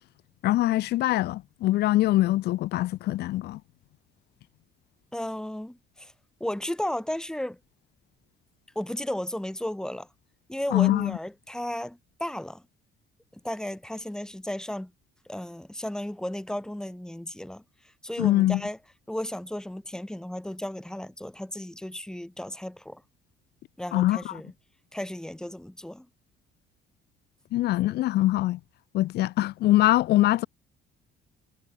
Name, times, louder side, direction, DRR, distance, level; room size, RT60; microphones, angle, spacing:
voice 1, 0.4-3.6 10.7-11.2 18.2-18.6 23.9-24.3 27.5-28.6 28.9-30.5, left 16 dB, 75° left, 1.9 m, -23 dB
voice 2, 5.1-6.1 6.4-7.6 8.7-10.1 10.5-12.6 13.4-14.9 15.3-17.6 18.0-18.8 19.1-23.0 23.8-24.5 24.9-26.1, left 1 dB, 5° left, 4.6 m, -34 dB
cardioid pair, 110°, 17 cm